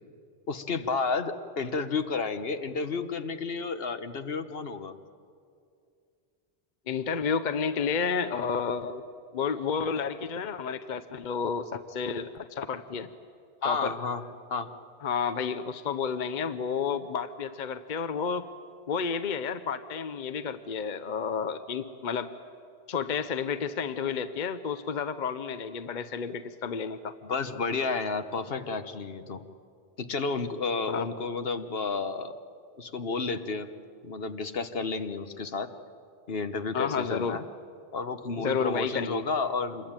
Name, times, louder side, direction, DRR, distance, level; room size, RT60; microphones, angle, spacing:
voice 1, 0.5-5.0 13.6-14.2 14.5-14.7 27.2-29.4 30.0-32.3 32.8-33.7 34.0-35.7 36.3-37.4 37.9-39.9, left 4 dB, 70° left, 9 dB, 1.3 m, -31 dB
voice 2, 6.9-9.0 9.3-13.1 13.6-13.9 15.0-18.5 18.9-22.3 22.9-27.1 30.9-31.1 36.7-37.4 38.4-39.2, left 6 dB, 50° left, 11 dB, 0.9 m, -31 dB
27.0 x 22.0 x 8.9 m, 2.4 s
omnidirectional pair, 1.0 m